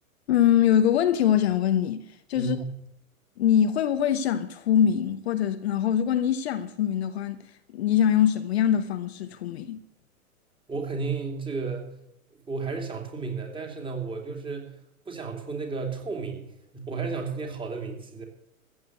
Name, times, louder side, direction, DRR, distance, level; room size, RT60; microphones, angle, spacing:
voice 1, 0.3-2.6 3.4-7.4 7.7-9.8, left 9 dB, 45° left, 1.0 m, -23 dB
voice 2, 2.3-2.7 10.7-11.9 12.5-14.7 15.1-18.2, right 4 dB, 10° right, 3.1 m, -33 dB
14.5 x 8.6 x 7.9 m
figure-of-eight pair, 110°, 43 cm